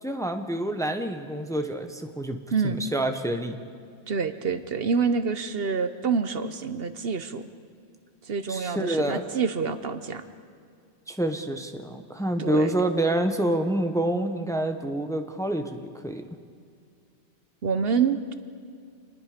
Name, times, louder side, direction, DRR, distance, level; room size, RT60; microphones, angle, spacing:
voice 1, 0.0-2.4 2.6-3.6 8.5-9.2 11.1-16.2, right 1 dB, 5° left, 6 dB, 1.1 m, -27 dB
voice 2, 4.1-7.4 8.3-10.2 12.4-12.7 17.6-18.3, right 5 dB, 60° right, 10 dB, 1.1 m, -27 dB
28.0 x 20.5 x 5.1 m, 2.3 s
omnidirectional pair, 1.1 m